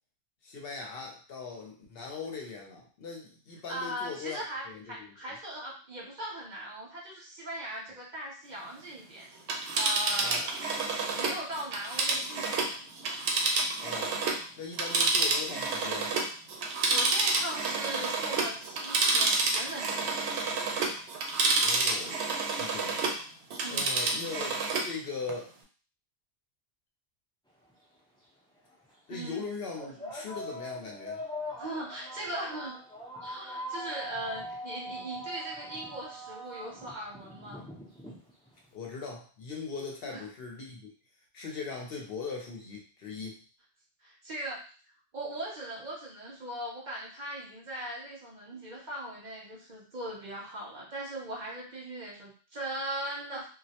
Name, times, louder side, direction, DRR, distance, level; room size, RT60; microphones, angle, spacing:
voice 1, 0.4-4.4 4.7-5.1 10.2-10.5 13.8-14.2 14.6-16.1 21.5-23.0 23.7-24.6 24.8-25.5 29.1-31.2 38.7-40.9 41.3-43.4, left 4 dB, 65° left, 0 dB, 0.8 m, -40 dB
voice 2, 3.7-9.3 9.7-10.7 11.0-12.6 16.9-20.3 23.6-23.9 29.1-29.4 30.0-30.1 31.6-32.8 33.1-37.6 40.0-40.2 44.0-44.6 45.1-53.5, right 1 dB, 50° right, -3 dB, 0.7 m, -39 dB
Telephone, 9.4-14.4 14.7-23.2 23.5-24.9 25.3-25.4, right 3 dB, 80° right, 0.8 m, -29 dB
sound 1, 27.7-27.8 28.7-28.9 29.8-38.7, left 1 dB, 5° left, 0.5 m, -42 dB
2.2 x 2.0 x 2.8 m, 0.39 s
omnidirectional pair, 1.1 m